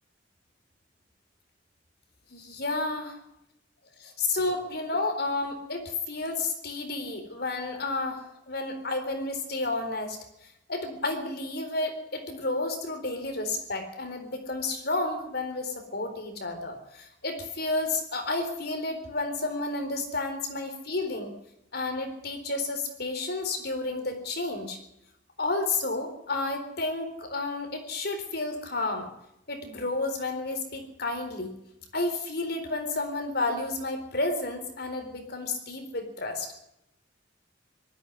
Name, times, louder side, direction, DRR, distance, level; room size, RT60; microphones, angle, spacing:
voice 1, 2.3-3.2 4.0-10.2 10.7-21.3 21.7-24.8 25.4-29.1 29.5-31.5 31.9-36.5, left 2 dB, 60° left, 6 dB, 4.1 m, -31 dB
19.0 x 13.5 x 10.0 m, 0.81 s
head